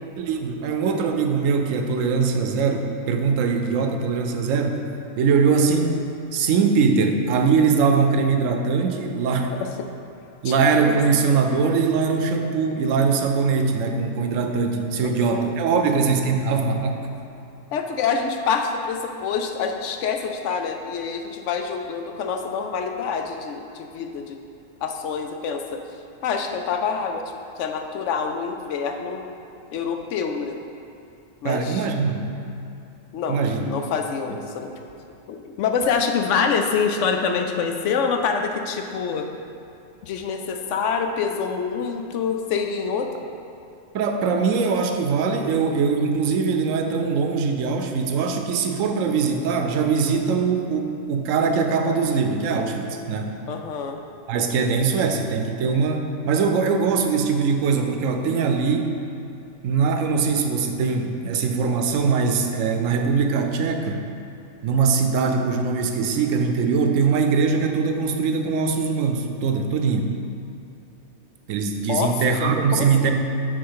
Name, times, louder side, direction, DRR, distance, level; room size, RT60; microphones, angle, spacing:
voice 1, 0.2-4.8 5.2-6.0 6.3-9.5 10.4-17.1 31.4-32.3 33.3-33.6 43.9-53.3 54.3-58.9 59.6-64.0 64.6-70.1 71.5-73.1, right 5 dB, 85° right, 5 dB, 1.0 m, -22 dB
voice 2, 15.0-16.3 17.7-24.4 24.8-25.8 26.2-27.2 27.6-29.2 29.7-30.6 31.4-31.9 33.1-33.4 33.6-34.7 35.3-39.3 40.0-43.3 53.5-54.0 71.9-72.1 72.4-73.1, left 6 dB, 75° left, 4 dB, 0.9 m, -26 dB
6.6 x 3.7 x 5.6 m, 2.7 s
omnidirectional pair, 1.3 m